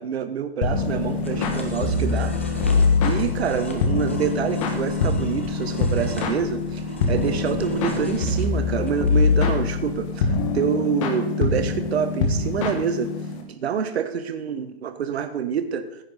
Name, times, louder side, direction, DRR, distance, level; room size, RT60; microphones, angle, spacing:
voice 1, 0.0-2.6 3.0-13.1 13.5-16.0, right 7 dB, 70° right, 10 dB, 1.2 m, -27 dB
sound 1, 0.6-13.4, left 4 dB, 30° left, 1.7 m, -24 dB
sound 2, 0.9-10.0, left 1 dB, 15° left, 0.3 m, -35 dB
16.0 x 9.8 x 4.1 m, 0.82 s
hypercardioid pair, 170°, 33 cm